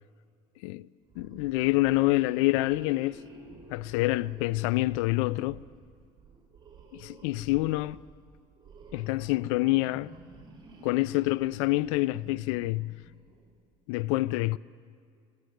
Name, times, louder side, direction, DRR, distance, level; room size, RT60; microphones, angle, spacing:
sound 1, 1.1-13.5, right 3 dB, 30° right, 6.3 m, -51 dB
voice 1, 1.2-3.2 3.7-5.6 6.9-8.0 8.9-10.1 10.8-13.0 13.9-14.6, left 19 dB, 75° left, 0.5 m, -27 dB
Marimba xylophone, 2.8-4.6, left 4 dB, ahead, 2.6 m, -55 dB
23.0 x 19.5 x 7.9 m
supercardioid pair, 95°, 16 cm